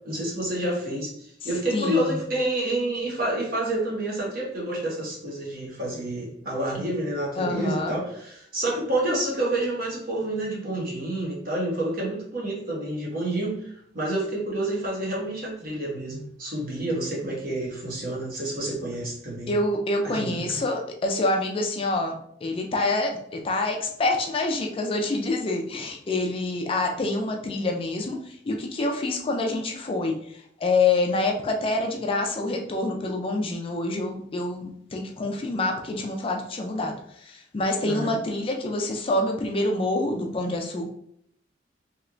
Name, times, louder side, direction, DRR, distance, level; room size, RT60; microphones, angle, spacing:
voice 1, 0.0-13.5 13.9-19.5 20.0-20.5 37.8-38.2, right 1 dB, 50° right, -4 dB, 1.2 m, -28 dB
voice 2, 1.7-2.2 7.4-7.9 19.5-40.9, left 2 dB, 30° left, 2 dB, 0.4 m, -27 dB
3.2 x 2.9 x 2.5 m, 0.69 s
head